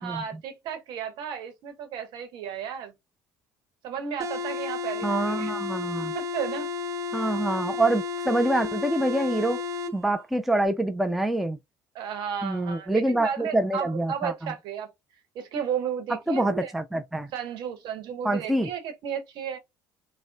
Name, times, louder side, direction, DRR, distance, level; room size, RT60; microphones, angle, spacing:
voice 1, 0.0-2.9 3.8-5.5 6.1-6.7 11.9-14.9 15.3-16.7 17.3-19.6, right 8 dB, 60° right, 1.0 m, -33 dB
sound 1, 4.2-10.0, left 4 dB, 40° right, 0.7 m, -32 dB
voice 2, 5.0-6.1 7.1-9.6 9.9-11.6 12.4-14.5 16.1-17.3 18.2-18.7, right 1 dB, ahead, 0.4 m, -26 dB
3.7 x 2.1 x 2.2 m
hypercardioid pair, 65°, 9 cm